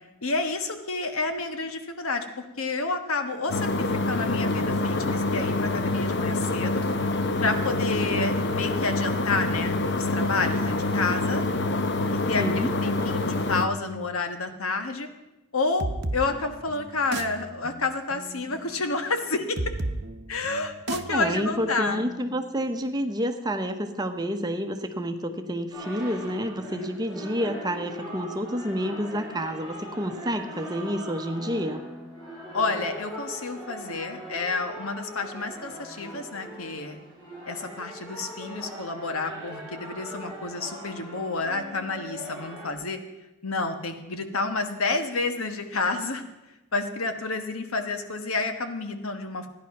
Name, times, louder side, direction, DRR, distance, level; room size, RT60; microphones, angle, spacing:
voice 1, 0.2-6.8 7.4-11.4 12.3-15.1 15.5-19.6 20.3-22.0 26.7-26.9 32.5-37.0 37.5-43.0 43.4-46.2 46.7-49.5, left 3 dB, 90° left, 7 dB, 1.4 m, -29 dB
sound 1, 3.5-13.7, left 2 dB, 55° left, 0.9 m, -26 dB
voice 2, 12.4-12.7 21.1-31.8, equal, 20° right, 7 dB, 0.8 m, -29 dB
sound 2, 15.8-23.2, right 2 dB, 50° right, 0.8 m, -36 dB
sound 3, 25.7-42.7, equal, 20° left, 5.9 m, -40 dB
14.5 x 10.5 x 5.9 m, 1.0 s
head